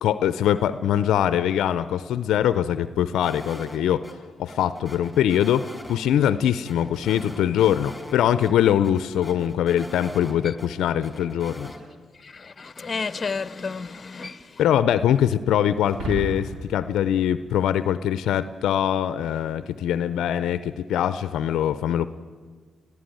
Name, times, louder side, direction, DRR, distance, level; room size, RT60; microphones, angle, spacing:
voice 1, 0.0-4.1 4.4-11.7 14.6-22.1, left 10 dB, 80° left, 0.5 m, -23 dB
sound 1, 3.2-4.1 4.5-6.0 6.2-6.3 6.7-8.1 8.4-8.5 8.8-10.7 11.0-11.8, left 1 dB, 5° left, 4.8 m, -42 dB
voice 2, 12.1-14.6, left 4 dB, 40° left, 0.8 m, -32 dB
sound 2, 15.8-18.4, right 2 dB, 80° right, 5.5 m, -34 dB
21.0 x 15.0 x 9.2 m
supercardioid pair, 55°, 0 cm